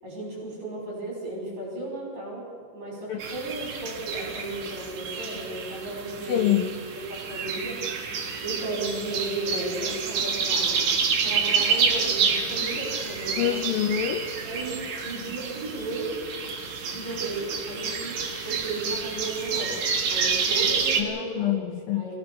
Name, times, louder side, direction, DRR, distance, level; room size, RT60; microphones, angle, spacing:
voice 1, 0.0-2.4 2.7-6.5 6.9-7.8 8.4-10.9 11.2-13.6 14.4-16.1 16.8-18.2 18.4-19.7 20.1-21.6 21.9-22.2, right 2 dB, 40° right, -4 dB, 6.4 m, -34 dB
sound 1, 3.2-21.0, right 5 dB, 55° right, 3.0 m, -28 dB
voice 2, 6.3-6.7 13.4-14.3 21.0-22.0, left 12 dB, 85° left, 7 dB, 2.0 m, -26 dB
23.0 x 16.5 x 6.9 m, 2.3 s
omnidirectional pair, 5.1 m